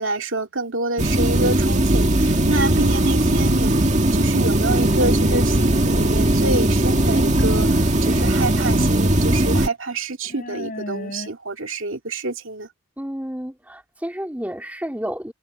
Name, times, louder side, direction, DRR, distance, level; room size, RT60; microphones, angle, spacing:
voice 1, 0.0-12.7, right 2 dB, 65° right, 2.4 m, -27 dB
sound 1, 1.0-9.7, right 1 dB, 35° right, 2.0 m, -18 dB
sound 2, 3.2-4.0 4.7-5.1 5.7-6.3 7.5-7.6 8.8-9.4 9.7-9.8 10.2-11.3, left 1 dB, 40° left, 4.5 m, -37 dB
voice 2, 13.0-15.3, equal, 5° right, 3.0 m, -30 dB
head